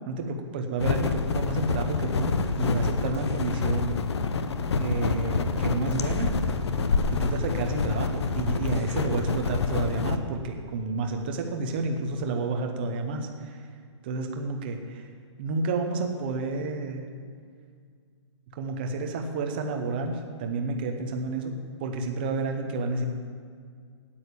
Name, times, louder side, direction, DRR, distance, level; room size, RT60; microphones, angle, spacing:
voice 1, 0.1-3.9 4.8-6.4 7.1-13.6 14.0-15.1 15.4-17.1 18.5-21.5 21.8-23.1, right 3 dB, 20° right, 4 dB, 0.7 m, -30 dB
sound 1, 0.8-10.2, left 4 dB, 60° left, 0.8 m, -27 dB
8.9 x 8.7 x 8.3 m, 2.1 s
hypercardioid pair, 180°, 16 cm